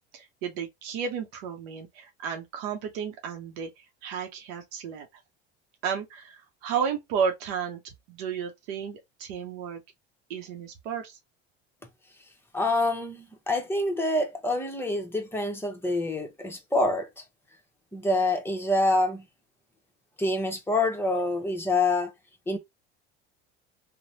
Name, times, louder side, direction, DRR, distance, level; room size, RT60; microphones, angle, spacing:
voice 1, 0.1-5.1 5.8-7.8 8.1-9.8 10.3-11.2, right 7 dB, 80° right, 0.7 m, -33 dB
voice 2, 12.5-17.2 17.9-19.2 20.2-22.1 22.5-22.6, left 2 dB, 10° left, 0.8 m, -26 dB
3.1 x 2.1 x 2.6 m
supercardioid pair, 95°, 30 cm